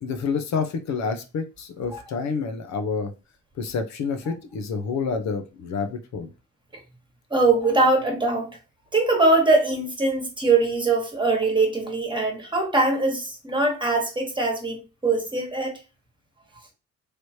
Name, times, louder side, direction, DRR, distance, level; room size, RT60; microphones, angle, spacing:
voice 1, 0.0-3.1 3.6-6.3, left 5 dB, 65° left, 0.7 m, -28 dB
voice 2, 7.3-8.5 8.9-15.7, right 3 dB, 15° right, 1.4 m, -22 dB
3.3 x 3.0 x 2.7 m
cardioid pair, 90°, 30 cm